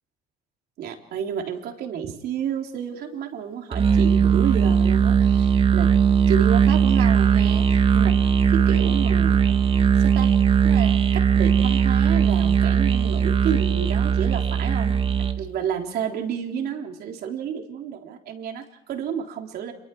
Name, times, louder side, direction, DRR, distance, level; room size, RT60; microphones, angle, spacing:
voice 1, 0.8-5.9 6.3-8.2 8.5-9.6 10.0-10.3 10.6-15.0 15.4-19.7, right 8 dB, 70° right, 3 dB, 3.8 m, -30 dB
Musical instrument, 3.7-15.4, right 7 dB, 35° right, 1.7 m, -19 dB
29.0 x 23.0 x 4.7 m, 0.88 s
cardioid pair, 110°, 17 cm